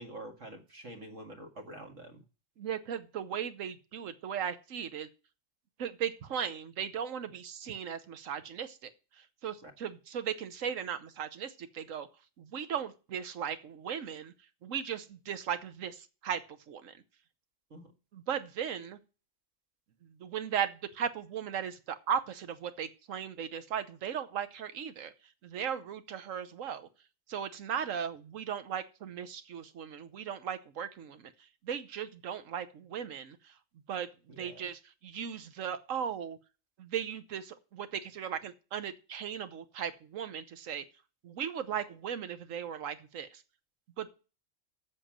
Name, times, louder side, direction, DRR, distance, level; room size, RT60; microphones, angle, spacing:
voice 1, 0.0-2.2 9.6-9.7 17.7-17.9 34.3-34.7, right 1 dB, 65° right, 3 dB, 2.3 m, -46 dB
voice 2, 2.6-5.1 5.8-12.1 12.4-14.3 14.6-17.0 18.1-19.0 20.0-26.9 27.3-33.6 33.9-36.4 36.8-40.8 41.2-43.4 44.0-44.1, right 8 dB, 80° right, 11 dB, 1.3 m, -37 dB
7.7 x 6.8 x 7.4 m, 0.33 s
omnidirectional pair, 1.3 m